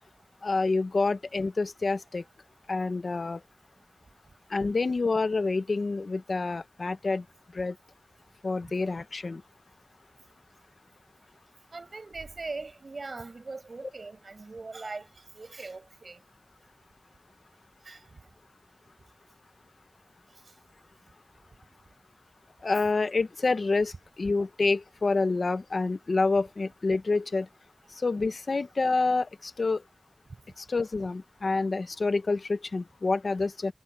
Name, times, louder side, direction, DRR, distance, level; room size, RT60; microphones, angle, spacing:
voice 1, 0.4-2.2 2.7-3.4 4.5-7.2 7.5-7.7 8.4-9.4 22.6-23.9 24.2-27.5 27.9-29.8 30.6-33.7, left 3 dB, 90° left, 1.1 m, -27 dB
voice 2, 11.7-15.1 15.3-16.2 17.8-18.0, right 3 dB, 80° right, 7.7 m, -40 dB
wide cardioid pair, 60°, 0 cm